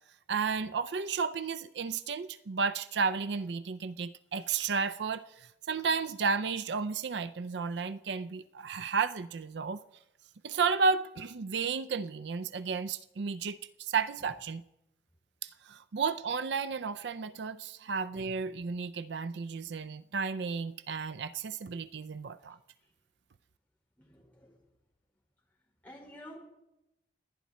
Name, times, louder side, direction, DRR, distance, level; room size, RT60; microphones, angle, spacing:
voice 1, 0.3-9.8 10.4-14.6 15.4-22.6, right 5 dB, 75° right, 0.5 m, -33 dB
voice 2, 24.0-24.6 25.8-26.5, equal, 10° left, 4.9 m, -50 dB
30.0 x 10.0 x 4.2 m
head